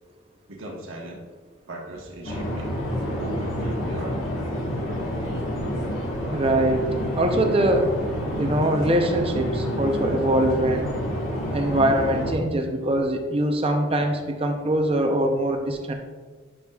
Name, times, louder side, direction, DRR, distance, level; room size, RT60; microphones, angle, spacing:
voice 1, 0.5-1.2 1.7-2.7 3.2-4.1, right 1 dB, 80° right, -2 dB, 1.2 m, -38 dB
sound 1, 2.2-12.3, equal, 80° left, 1.7 m, -28 dB
voice 2, 6.3-6.9 7.2-7.9 8.4-10.9 11.5-15.9, right 1 dB, 30° right, 4 dB, 0.6 m, -23 dB
10.5 x 5.9 x 2.4 m, 1.4 s
head